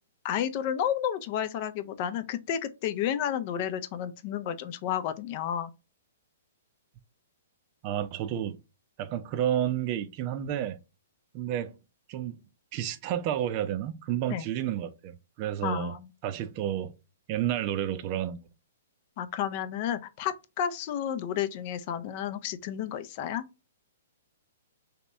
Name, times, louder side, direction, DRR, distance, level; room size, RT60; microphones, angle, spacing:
voice 1, 0.2-5.7 14.3-14.5 15.6-16.0 19.2-23.4, left 9 dB, 45° left, 0.5 m, -31 dB
voice 2, 7.8-8.6 9.0-10.8 11.3-11.7 12.1-12.4 12.7-15.9 16.2-16.9 17.3-18.4, right 11 dB, 40° right, 0.4 m, -30 dB
3.0 x 2.9 x 3.4 m
hypercardioid pair, 135°, 0 cm